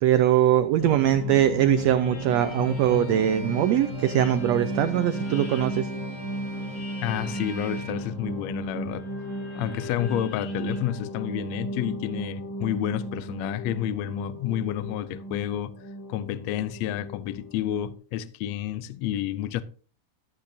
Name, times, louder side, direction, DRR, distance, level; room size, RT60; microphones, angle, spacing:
voice 1, 0.0-5.9, right 12 dB, 85° right, 1.5 m, -22 dB
sound 1, 0.8-17.9, left 1 dB, 30° left, 4.0 m, -34 dB
Bowed string instrument, 2.3-8.0, right 1 dB, 65° left, 4.2 m, -46 dB
voice 2, 7.0-9.1 9.5-15.7 16.1-19.6, left 11 dB, 80° left, 1.5 m, -30 dB
13.5 x 8.5 x 2.7 m
omnidirectional pair, 3.7 m